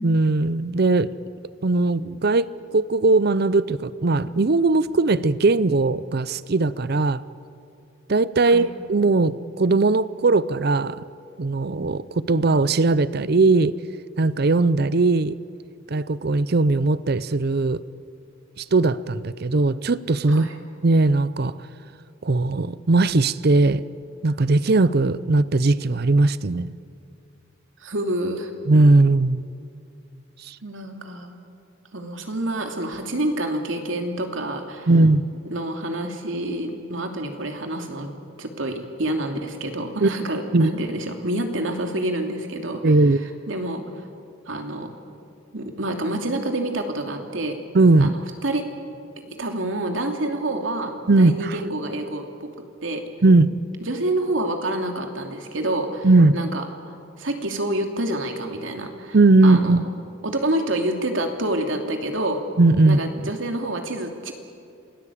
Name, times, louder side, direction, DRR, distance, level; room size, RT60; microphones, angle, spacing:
voice 1, 0.0-1.1 1.6-7.2 8.1-11.0 11.4-13.8 14.2-15.3 15.9-17.8 18.6-20.5 20.8-21.5 22.2-23.8 24.2-26.7 28.7-29.4 30.5-30.6 34.9-35.3 40.0-40.1 40.5-40.7 42.8-43.2 47.7-48.1 51.1-51.6 53.2-53.6 56.0-56.4 59.1-59.8 62.6-63.0, right 2 dB, 55° right, 17 dB, 0.6 m, -19 dB
voice 2, 27.8-28.5 30.6-31.4 31.9-34.9 35.5-38.1 38.4-42.9 43.5-44.1 44.5-44.9 45.5-47.6 48.0-48.6 49.2-50.9 51.2-52.5 52.8-53.0 53.8-59.2 59.4-59.8 60.2-62.4 62.8-64.3, right 1 dB, 80° right, 4 dB, 2.7 m, -28 dB
27.5 x 18.5 x 8.5 m, 2.5 s
head